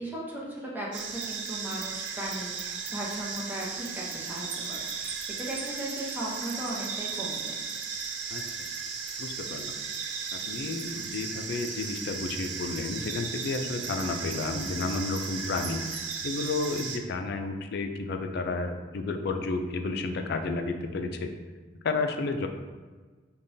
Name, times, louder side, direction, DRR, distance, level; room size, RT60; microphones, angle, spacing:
voice 1, 0.0-7.7, right 1 dB, 10° right, -5 dB, 0.7 m, -37 dB
sound 1, 0.9-17.0, right 5 dB, 75° right, 0.4 m, -36 dB
voice 2, 9.2-9.7 10.3-21.3 21.8-22.5, left 3 dB, 60° left, 6 dB, 0.4 m, -31 dB
5.3 x 2.3 x 2.6 m, 1.4 s
head